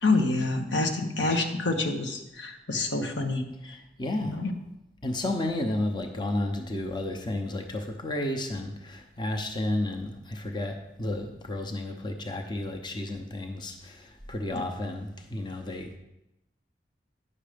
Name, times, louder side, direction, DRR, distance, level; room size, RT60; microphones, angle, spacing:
voice 1, 0.0-3.8 4.2-4.5 14.5-14.6, left 2 dB, 90° left, 4 dB, 1.2 m, -27 dB
voice 2, 4.0-4.4 5.0-16.0, left 1 dB, 25° left, 4 dB, 0.8 m, -32 dB
9.8 x 6.6 x 5.1 m, 0.91 s
head